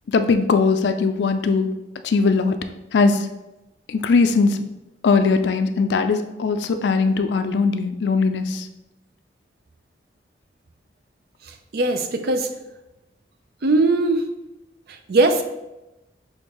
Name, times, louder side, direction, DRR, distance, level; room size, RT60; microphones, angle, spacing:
voice 1, 0.1-1.7 2.0-2.6 2.9-3.3 3.9-4.6 5.0-8.7, left 4 dB, 75° left, 9 dB, 0.4 m, -20 dB
voice 2, 11.7-12.5 13.6-14.2 15.1-15.4, right 2 dB, 60° right, 6 dB, 0.4 m, -19 dB
6.4 x 2.6 x 2.9 m, 0.97 s
head